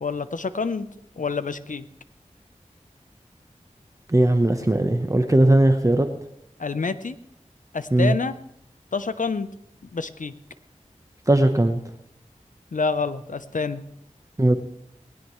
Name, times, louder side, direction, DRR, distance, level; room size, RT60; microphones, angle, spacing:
voice 1, 0.0-0.9 1.2-1.8 6.6-7.2 7.7-8.3 8.9-9.5 9.9-10.3 12.7-13.8, left 4 dB, 80° left, 13 dB, 0.8 m, -27 dB
voice 2, 4.1-6.1 7.9-8.1 11.3-11.8 14.4-14.5, right 1 dB, 25° right, 6 dB, 1.0 m, -18 dB
20.0 x 16.5 x 3.2 m, 0.76 s
wide cardioid pair, 45°, 13 cm